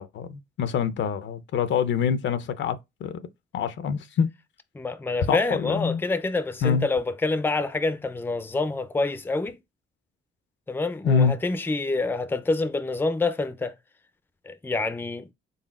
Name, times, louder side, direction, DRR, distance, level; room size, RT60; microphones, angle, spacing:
voice 1, 0.0-2.8 3.0-3.2 3.5-4.3 5.3-6.0 6.6-6.9 11.0-11.3, left 6 dB, 65° left, 0.6 m, -25 dB
voice 2, 4.8-9.6 10.7-13.7 14.5-15.3, left 3 dB, 10° left, 0.5 m, -27 dB
4.0 x 3.5 x 2.4 m
cardioid pair, 90°, 20 cm